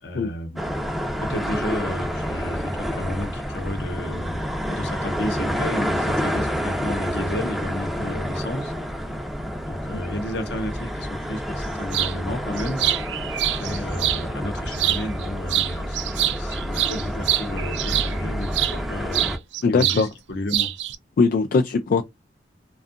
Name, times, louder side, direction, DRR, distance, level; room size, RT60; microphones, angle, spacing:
voice 1, 0.0-0.6 1.2-4.4 4.7-8.7 9.7-12.8 13.4-19.3 19.7-20.7, left 1 dB, 70° left, 0.8 m, -32 dB
sound 1, 0.6-19.4, equal, ahead, 0.5 m, -29 dB
sound 2, 11.9-12.1 12.6-14.2 14.7-15.2 15.5-18.8 19.1-20.0 20.3-21.0, right 13 dB, 75° right, 0.4 m, -25 dB
voice 2, 19.6-20.1 21.2-22.0, left 4 dB, 55° left, 0.3 m, -20 dB
2.6 x 2.3 x 2.4 m
head